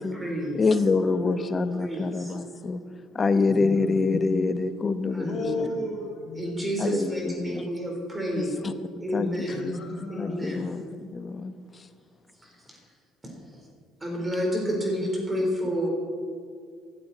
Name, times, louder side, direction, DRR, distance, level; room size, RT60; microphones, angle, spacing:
voice 1, 0.0-0.6 1.2-1.5 1.8-2.3 5.1-5.7 6.4-8.5 9.0-9.8 10.1-10.7 12.4-12.5 14.0-15.9, equal, 20° right, -1 dB, 4.0 m, -30 dB
voice 2, 0.5-2.8 3.1-5.4 6.8-7.7 8.3-8.7 9.1-9.3 9.6-9.8 10.2-11.9 15.0-15.1 15.4-15.5, left 4 dB, 35° left, 11 dB, 1.0 m, -26 dB
voice 3, 3.5-3.9 5.2-6.5 9.5-10.4, left 2 dB, 50° left, -1 dB, 2.8 m, -33 dB
15.0 x 13.0 x 4.2 m, 2.1 s
supercardioid pair, 75°, 0 cm